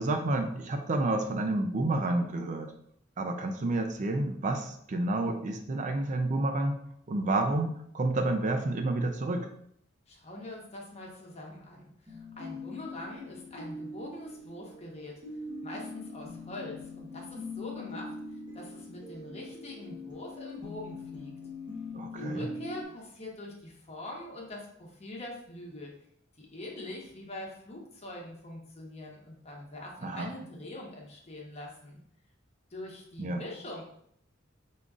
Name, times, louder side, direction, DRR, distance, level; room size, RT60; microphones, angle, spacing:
voice 1, 0.0-2.7 3.2-6.8 7.1-9.5 21.9-22.5 30.0-30.3 33.2-33.4, right 2 dB, 40° right, 5 dB, 0.4 m, -29 dB
voice 2, 10.1-15.2 15.6-18.1 18.5-21.3 22.1-25.9 26.4-32.0 32.7-33.8, left 1 dB, 30° left, -1 dB, 1.0 m, -43 dB
sound 1, 12.1-22.8, left 2 dB, 20° right, 1.1 m, -42 dB
5.1 x 3.7 x 2.4 m, 0.68 s
head